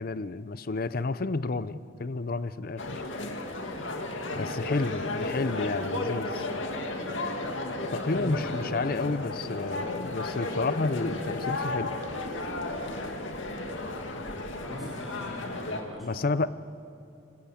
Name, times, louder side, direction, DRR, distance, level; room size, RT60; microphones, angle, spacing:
voice 1, 0.0-3.0 4.4-6.5 7.9-11.9 14.8-14.9 16.0-16.5, left 3 dB, 45° left, 15 dB, 0.6 m, -31 dB
sound 1, 2.8-15.8, left 2 dB, 70° left, 2.4 m, -34 dB
voice 2, 4.7-5.1 8.1-9.1 14.6-16.2, equal, ahead, -6 dB, 3.7 m, -41 dB
27.5 x 19.0 x 8.6 m, 2.6 s
head